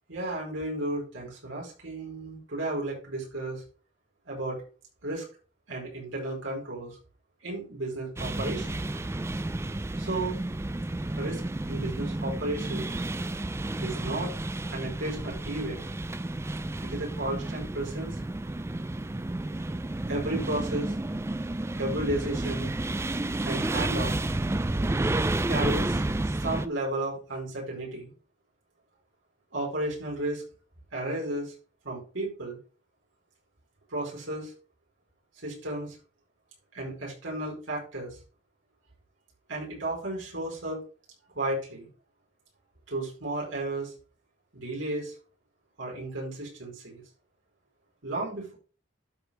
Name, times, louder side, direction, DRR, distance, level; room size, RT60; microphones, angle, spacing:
voice 1, 0.1-3.6 4.3-4.6 5.0-5.2 5.7-7.0 7.4-8.8 10.0-10.3 11.2-12.9 13.8-14.3 14.7-15.8 16.8-18.2 20.1-20.9 21.8-22.7 23.4-24.1 25.5-28.1 29.5-30.4 30.9-31.5 31.8-32.6 33.9-34.5 35.4-36.0 36.7-38.2 39.5-40.8 41.3-41.9 42.9-43.9 44.5-45.1 45.8-47.0 48.0-48.5, right 1 dB, 90° right, -3 dB, 5.0 m, -33 dB
sound 1, 8.2-26.7, right 2 dB, 15° right, 0.4 m, -31 dB
12.5 x 5.2 x 3.6 m, 0.36 s
head